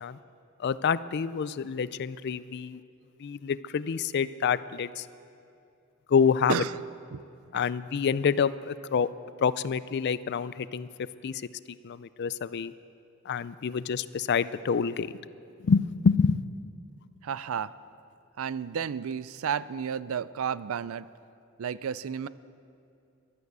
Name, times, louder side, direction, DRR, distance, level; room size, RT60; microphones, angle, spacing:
voice 1, 0.6-2.8 3.2-5.1 6.1-6.6 7.5-9.1 9.4-10.9 11.2-11.4 11.7-12.7 13.3-15.1 15.6-16.4, left 6 dB, 55° left, 16 dB, 0.4 m, -27 dB
voice 2, 17.2-17.7 18.4-21.1 21.6-22.3, right 7 dB, 80° right, 17 dB, 0.4 m, -32 dB
12.0 x 11.0 x 8.2 m, 2.6 s
head